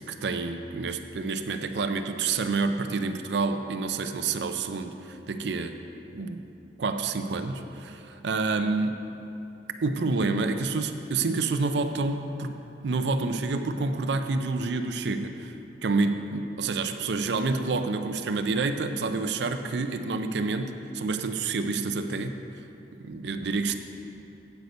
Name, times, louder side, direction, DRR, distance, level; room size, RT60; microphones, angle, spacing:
voice 1, 0.0-5.8 6.1-6.4 6.8-9.0 9.8-12.5 12.8-15.5 15.8-22.3 23.0-23.8, right 3 dB, 70° right, 8 dB, 0.5 m, -28 dB
8.1 x 8.1 x 5.2 m, 2.8 s
head